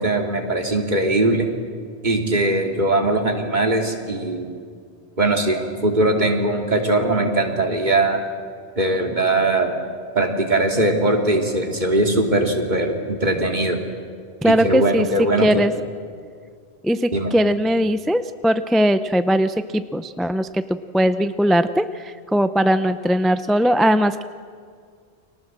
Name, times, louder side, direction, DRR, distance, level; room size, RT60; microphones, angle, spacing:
voice 1, 0.0-1.5 2.0-4.5 5.2-8.2 8.8-9.8 10.1-13.8 14.4-15.7 17.1-17.3, right 2 dB, 40° right, 2 dB, 3.0 m, -20 dB
voice 2, 14.4-15.7 16.8-24.2, equal, ahead, 11 dB, 0.4 m, -20 dB
30.0 x 23.5 x 7.6 m, 2.1 s
omnidirectional pair, 1.2 m